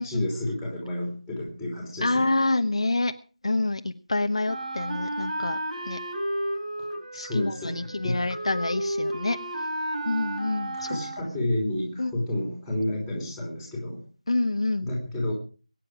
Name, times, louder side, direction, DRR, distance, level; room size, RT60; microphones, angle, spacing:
voice 1, 0.0-2.3 7.1-8.2 10.8-14.0 14.8-15.3, left 1 dB, ahead, -2 dB, 3.2 m, -30 dB
voice 2, 2.0-3.1 3.4-5.6 5.8-6.0 7.1-9.7 10.1-11.0 12.0-12.1 14.3-14.9, left 2 dB, 50° left, 7 dB, 1.0 m, -27 dB
Wind instrument woodwind instrument, 4.5-11.5, right 1 dB, 80° right, 5.4 m, -32 dB
22.0 x 9.7 x 4.9 m, 0.37 s
figure-of-eight pair, 170°, 4 cm